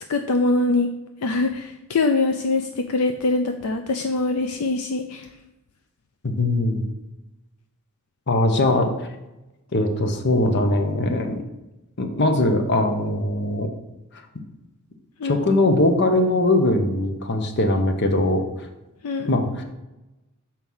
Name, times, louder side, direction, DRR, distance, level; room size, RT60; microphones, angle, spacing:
voice 1, 0.1-0.9 1.2-5.3 15.2-15.4 19.0-19.3, left 3 dB, 75° left, 6 dB, 0.5 m, -23 dB
voice 2, 6.2-6.8 8.3-8.9 9.7-11.4 12.0-13.7 15.2-18.4 19.3-19.6, left 2 dB, 55° left, 6 dB, 0.9 m, -21 dB
6.2 x 4.5 x 5.5 m, 0.99 s
head